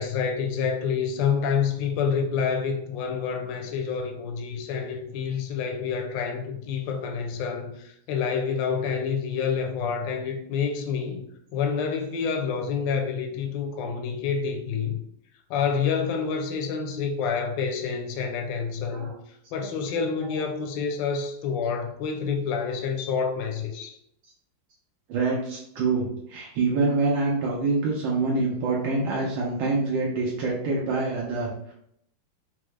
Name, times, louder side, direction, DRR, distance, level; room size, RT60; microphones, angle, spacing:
voice 1, 0.0-11.2 11.5-15.0 15.5-19.1 19.5-24.0, left 6 dB, 75° left, 3 dB, 1.2 m, -28 dB
voice 2, 25.1-31.7, right 3 dB, 80° right, -4 dB, 1.5 m, -26 dB
4.5 x 2.0 x 3.1 m, 0.72 s
omnidirectional pair, 2.2 m